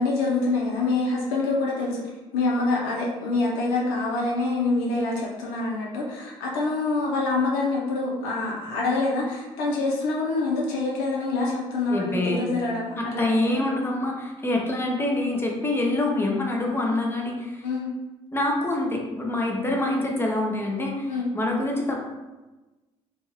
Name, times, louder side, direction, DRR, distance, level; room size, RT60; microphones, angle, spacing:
voice 1, 0.0-2.0 2.3-13.6 17.6-17.9 21.1-21.3, left 3 dB, 80° left, -3 dB, 0.7 m, -26 dB
voice 2, 11.9-12.5 13.0-17.7 18.3-22.1, left 2 dB, 15° left, 0 dB, 0.7 m, -26 dB
2.6 x 2.3 x 3.1 m, 1.1 s
hypercardioid pair, 60°, 15 cm